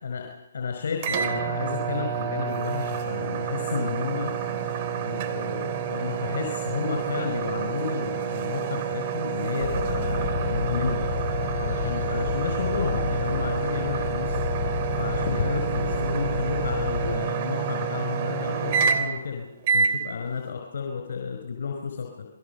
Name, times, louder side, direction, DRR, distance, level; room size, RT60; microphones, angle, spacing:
voice 1, 0.0-4.4 5.0-11.0 11.4-14.5 15.0-22.3, left 6 dB, 65° left, 3 dB, 4.7 m, -32 dB
sound 1, 1.0-19.3 19.6-20.0, right 7 dB, 40° right, 3.1 m, -28 dB
sound 2, 9.6-17.2, left 6 dB, 50° left, 6.6 m, -30 dB
28.0 x 20.5 x 6.9 m, 0.96 s
hypercardioid pair, 140°, 0 cm